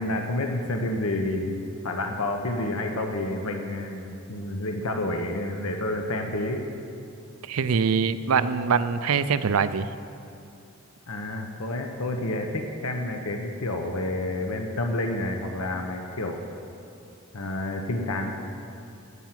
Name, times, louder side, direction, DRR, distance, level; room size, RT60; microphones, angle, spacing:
voice 1, 0.0-1.6 1.8-6.7 11.1-16.4 17.3-18.3, left 1 dB, 85° left, 4 dB, 1.0 m, -29 dB
voice 2, 7.5-9.9, right 6 dB, 80° right, 13 dB, 0.5 m, -23 dB
16.5 x 5.9 x 7.5 m, 2.6 s
head